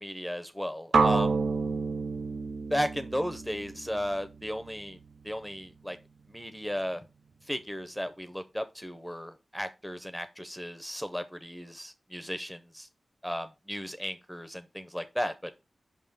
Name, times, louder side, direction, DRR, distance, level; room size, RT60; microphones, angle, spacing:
voice 1, 0.0-1.4 2.7-5.0 5.2-6.0 6.3-7.0 7.5-12.9 13.2-15.6, equal, ahead, 10 dB, 0.6 m, -35 dB
sound 1, 0.9-4.9, right 4 dB, 75° right, 0.4 m, -29 dB
5.4 x 3.6 x 5.3 m, 0.26 s
cardioid pair, 65°, 0 cm